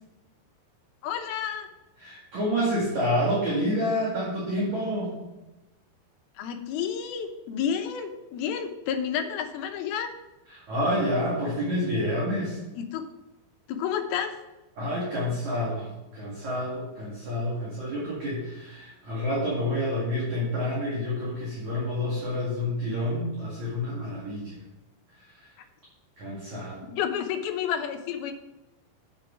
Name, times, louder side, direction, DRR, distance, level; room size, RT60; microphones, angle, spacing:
voice 1, 1.0-1.7 6.4-10.1 12.8-13.1 13.7-14.4 26.9-28.3, left 8 dB, 75° left, 5 dB, 2.4 m, -30 dB
voice 2, 2.0-5.1 10.5-12.6 14.8-24.6 26.2-26.8, equal, 50° right, -5 dB, 3.0 m, -28 dB
8.9 x 6.8 x 6.1 m, 0.99 s
omnidirectional pair, 5.1 m